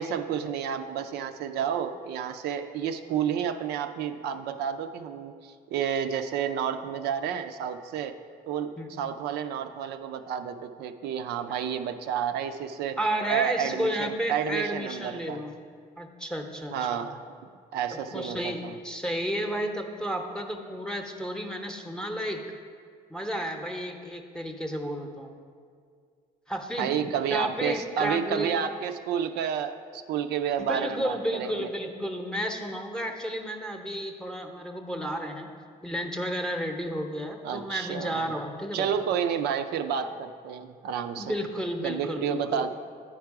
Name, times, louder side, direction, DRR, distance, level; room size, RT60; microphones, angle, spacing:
voice 1, 0.0-8.2 8.5-13.0 13.3-15.4 16.7-17.2 17.7-18.8 26.8-31.7 37.4-38.3 38.7-41.3 41.8-42.7, right 8 dB, 75° right, 7 dB, 0.4 m, -30 dB
voice 2, 13.0-15.5 16.0-17.1 17.9-22.4 23.1-25.3 26.5-26.9 27.3-28.6 30.7-35.5 35.8-38.9 41.2-42.6, equal, 5° left, 3 dB, 0.7 m, -32 dB
9.7 x 4.7 x 4.7 m, 2.1 s
cardioid pair, 110°, 17 cm